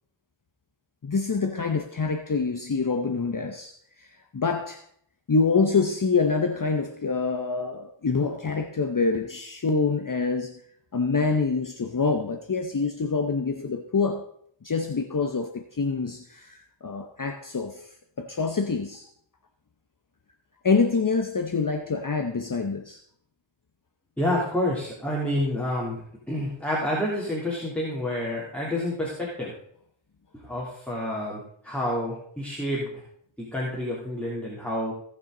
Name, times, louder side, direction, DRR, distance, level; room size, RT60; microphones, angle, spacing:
voice 1, 1.0-4.9 5.3-10.6 10.9-14.3 14.6-19.1 20.6-23.0, left 4 dB, 40° left, 0.9 m, -26 dB
voice 2, 24.2-26.0 26.3-29.5 30.4-32.9 33.4-34.9, left 1 dB, 5° left, 3.1 m, -28 dB
17.5 x 6.0 x 3.9 m
wide cardioid pair, 65°, 49 cm